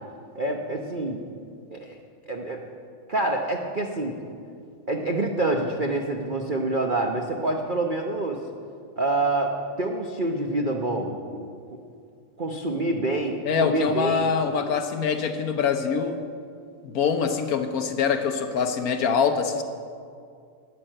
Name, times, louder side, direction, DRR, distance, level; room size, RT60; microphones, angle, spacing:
voice 1, 0.3-1.2 1.7-2.0 2.3-2.6 3.1-4.2 4.9-8.4 9.0-9.5 9.8-11.5 12.4-14.3, right 2 dB, 60° right, 1 dB, 0.5 m, -27 dB
voice 2, 13.4-16.2 16.8-19.6, left 6 dB, 60° left, 7 dB, 1.0 m, -24 dB
12.0 x 10.5 x 7.7 m, 2.3 s
omnidirectional pair, 2.3 m